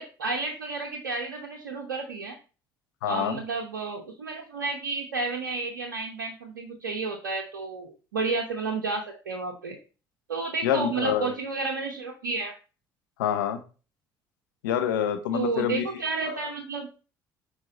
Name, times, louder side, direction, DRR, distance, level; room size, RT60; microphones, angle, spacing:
voice 1, 0.0-2.3 3.1-9.8 10.3-12.5 15.3-16.9, right 4 dB, 90° right, 1 dB, 0.8 m, -31 dB
voice 2, 3.0-3.4 10.6-11.3 13.2-13.6 14.6-15.8 16.2-16.5, left 9 dB, 85° left, 8 dB, 0.8 m, -27 dB
6.2 x 4.5 x 3.9 m, 0.35 s
hypercardioid pair, 60°, 11 cm